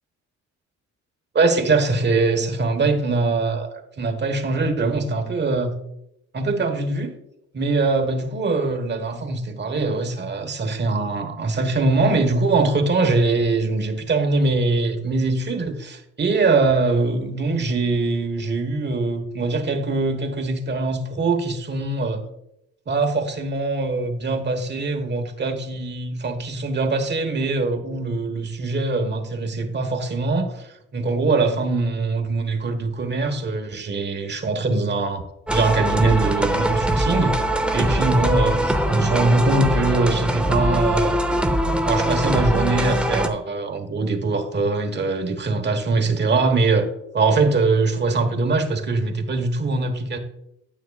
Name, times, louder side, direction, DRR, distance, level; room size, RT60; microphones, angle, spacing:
voice 1, 1.3-5.7 6.3-7.1 7.5-22.2 22.9-37.4 37.7-41.2 41.9-46.9 47.1-50.2, right 3 dB, 35° right, 5 dB, 1.3 m, -22 dB
sound 1, 35.5-43.3, right 1 dB, 5° right, 0.7 m, -22 dB
9.2 x 8.2 x 2.4 m, 0.81 s
cardioid pair, 90°, 30 cm